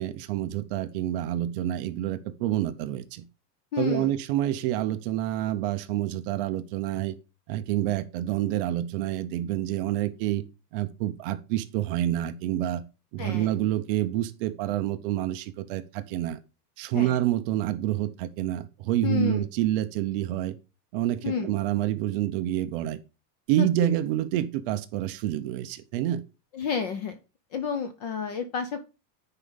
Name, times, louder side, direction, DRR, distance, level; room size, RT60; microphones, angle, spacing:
voice 1, 0.0-3.2 3.8-7.1 7.5-10.4 10.7-12.8 13.1-16.4 16.8-20.6 20.9-23.0 23.5-26.2, right 13 dB, 35° right, 0.6 m, -28 dB
voice 2, 3.7-4.1 13.2-13.5 16.9-17.2 19.0-19.5 21.2-21.5 23.6-23.7 26.5-27.1 27.5-28.8, left 6 dB, 25° left, 0.4 m, -30 dB
9.9 x 4.7 x 4.0 m
supercardioid pair, 160°, 50 cm